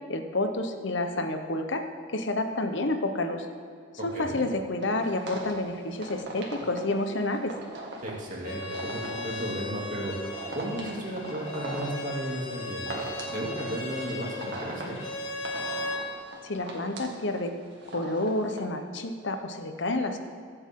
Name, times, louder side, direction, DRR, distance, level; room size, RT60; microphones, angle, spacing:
voice 1, 0.0-1.8 2.1-3.5 4.0-7.5 16.4-17.5 17.9-20.2, left 2 dB, 70° left, 6 dB, 1.1 m, -29 dB
sound 1, 4.8-18.6, right 2 dB, 60° right, 2.2 m, -40 dB
voice 2, 8.0-10.1 10.5-14.9, right 1 dB, 40° right, -3 dB, 2.8 m, -34 dB
Bowed string instrument, 8.4-16.0, left 2 dB, 85° left, 1.8 m, -37 dB
22.5 x 8.0 x 3.8 m, 2.3 s
head